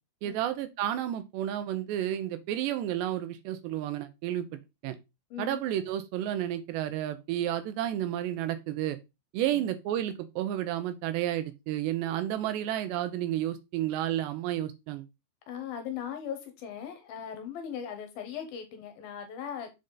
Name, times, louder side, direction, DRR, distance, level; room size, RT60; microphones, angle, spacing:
voice 1, 0.2-5.0 5.4-9.0 9.3-15.1, right 12 dB, 85° right, 3.1 m, -31 dB
voice 2, 5.3-5.6 9.5-9.7 15.5-19.7, left 8 dB, 70° left, 2.7 m, -39 dB
7.6 x 5.0 x 3.9 m
omnidirectional pair, 4.9 m